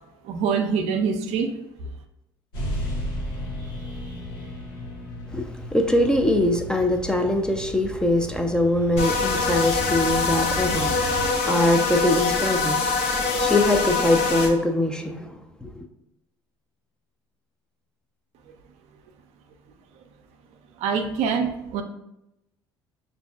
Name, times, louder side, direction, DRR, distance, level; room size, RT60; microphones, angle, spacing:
voice 1, 0.2-1.5 20.8-21.8, right 6 dB, 65° right, 0.5 m, -24 dB
sound 1, 2.5-11.3, equal, 90° left, 0.9 m, -34 dB
voice 2, 5.3-15.8, left 1 dB, 5° left, 0.5 m, -23 dB
sound 2, 9.0-14.5, left 4 dB, 60° left, 0.8 m, -24 dB
6.0 x 2.6 x 2.3 m
hypercardioid pair, 65°, 12 cm